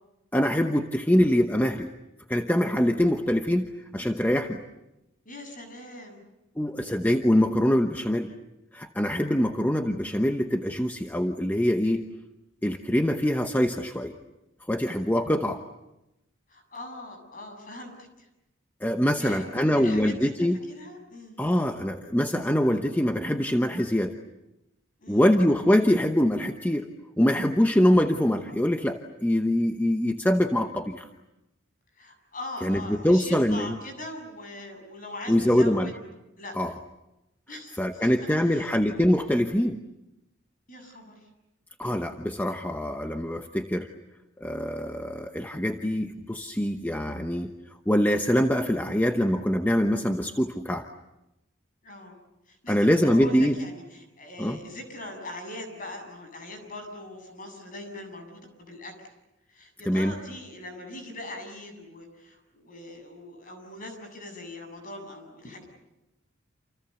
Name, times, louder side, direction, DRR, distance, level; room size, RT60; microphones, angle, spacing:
voice 1, 0.3-1.9 2.3-4.6 6.6-8.3 8.7-12.1 12.6-14.1 14.7-15.6 18.8-20.6 21.4-24.2 25.1-26.9 27.2-31.1 32.6-33.8 35.3-35.9 36.6-36.7 37.8-39.8 41.8-43.9 44.4-47.5 47.9-50.9 52.7-53.5 54.4-54.6 59.8-60.1, equal, 10° left, 5 dB, 0.9 m, -24 dB
voice 2, 5.2-6.2 16.5-18.3 19.2-21.4 25.0-25.3 31.9-35.9 36.4-36.6 37.5-38.8 40.7-41.3 51.8-52.1 52.5-58.9 59.5-65.7, left 1 dB, 40° left, 5 dB, 7.6 m, -41 dB
29.0 x 28.5 x 7.0 m, 0.94 s
head